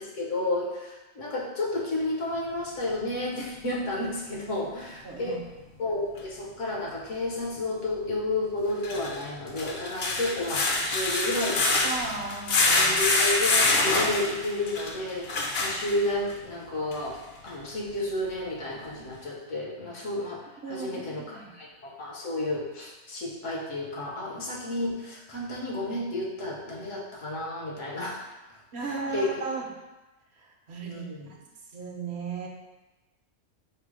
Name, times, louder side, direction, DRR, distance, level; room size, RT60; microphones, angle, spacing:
voice 1, 0.0-5.4 5.8-11.9 12.8-17.2 17.4-29.3 30.8-31.3, left 2 dB, 75° left, -2 dB, 1.3 m, -32 dB
voice 2, 5.0-5.4 11.8-13.0 20.6-21.0 21.3-21.5 28.7-29.6 30.4-31.4 31.7-32.5, right 4 dB, 65° right, 0 dB, 0.9 m, -35 dB
sound 1, 6.2-6.3 8.7-16.3 16.9-17.0 17.5-17.6, left 2 dB, 60° left, 0.8 m, -26 dB
5.5 x 2.0 x 4.7 m, 1.1 s
omnidirectional pair, 1.3 m